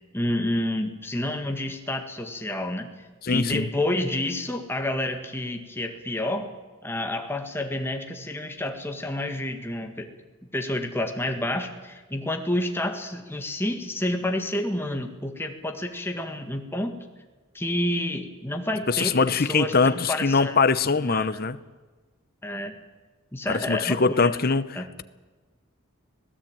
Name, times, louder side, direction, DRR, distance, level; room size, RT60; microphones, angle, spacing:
voice 1, 0.1-2.9 3.3-6.5 6.8-10.1 10.5-17.0 17.5-20.6 21.0-21.5 22.4-22.8 23.3-24.4 24.8-24.9, left 1 dB, 10° left, 1.8 m, -29 dB
voice 2, 3.2-3.7 18.9-21.6 23.5-24.8, left 4 dB, 45° left, 0.8 m, -22 dB
25.5 x 17.5 x 9.0 m
head